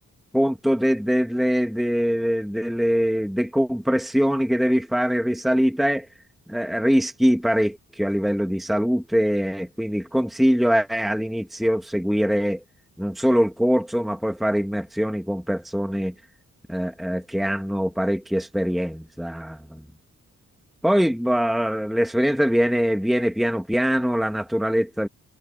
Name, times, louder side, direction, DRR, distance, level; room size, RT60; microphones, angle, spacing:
voice 1, 0.3-6.1 6.5-12.6 13.0-16.1 16.7-19.8 20.8-25.1, equal, ahead, 1.3 m, -23 dB
wide cardioid pair, 150°, 31 cm